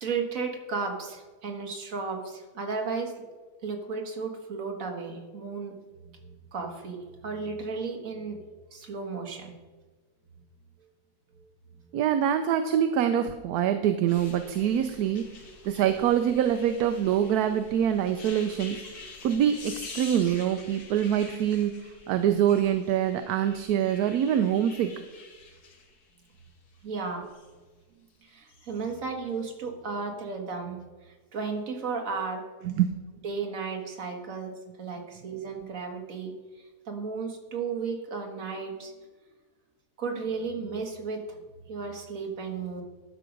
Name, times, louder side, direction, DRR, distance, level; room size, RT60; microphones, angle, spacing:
voice 1, 0.0-3.3 3.6-5.8 6.0-8.4 8.7-9.6 11.4-11.5 26.8-27.3 28.2-32.4 33.2-34.5 34.8-38.9 40.0-41.4 41.7-42.8, right 4 dB, 55° right, 2 dB, 1.8 m, -34 dB
voice 2, 11.9-15.2 15.6-25.0 32.6-32.9, right 9 dB, 75° right, 8 dB, 1.1 m, -25 dB
sound 1, 14.1-27.5 28.4-28.9 29.5-29.6, left 4 dB, 70° left, 1.8 m, -47 dB
12.0 x 6.2 x 5.1 m, 1.3 s
omnidirectional pair, 1.7 m